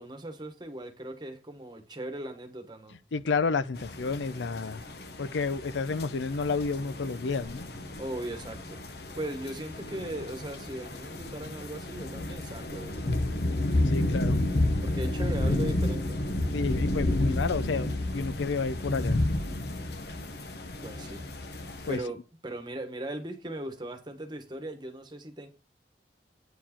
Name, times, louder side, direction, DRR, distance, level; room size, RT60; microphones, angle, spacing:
voice 1, 0.0-3.0 8.0-8.8 9.1-13.2 14.8-16.2 20.8-21.3 21.6-25.5, right 1 dB, 25° right, 1.2 m, -38 dB
voice 2, 3.1-4.8 5.2-7.7 13.6-14.4 16.5-19.2 21.9-22.0, left 4 dB, 85° left, 0.5 m, -30 dB
sound 1, 3.8-22.0, left 1 dB, 65° left, 0.9 m, -31 dB
9.0 x 4.6 x 4.3 m
head